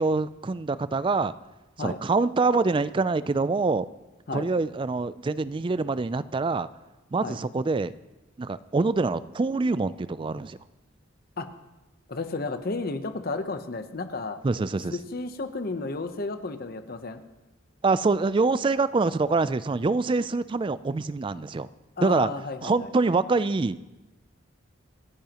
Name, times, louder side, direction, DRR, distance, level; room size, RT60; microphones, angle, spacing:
voice 1, 0.0-1.3 1.8-3.9 4.3-6.7 7.1-7.9 8.4-10.6 14.4-15.0 17.8-21.7 22.0-22.3 22.6-23.8, right 3 dB, 25° right, 16 dB, 0.3 m, -25 dB
voice 2, 12.1-14.4 14.9-17.2 22.0-22.9, left 3 dB, 45° left, 9 dB, 0.8 m, -32 dB
26.5 x 10.5 x 3.0 m, 1.1 s
head